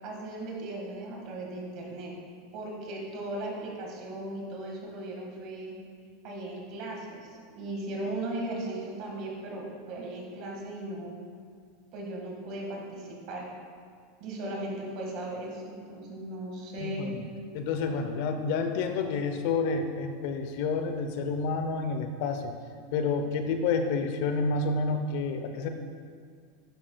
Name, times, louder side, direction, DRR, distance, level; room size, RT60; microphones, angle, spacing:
voice 1, 0.0-2.1 2.5-5.8 6.2-11.2 11.9-13.5 14.2-17.1, right 1 dB, 55° right, -1 dB, 1.7 m, -37 dB
voice 2, 16.8-17.2 17.5-22.5 22.9-25.7, left 4 dB, 65° left, 7 dB, 0.6 m, -29 dB
10.0 x 6.2 x 2.3 m, 2.1 s
hypercardioid pair, 110°, 0 cm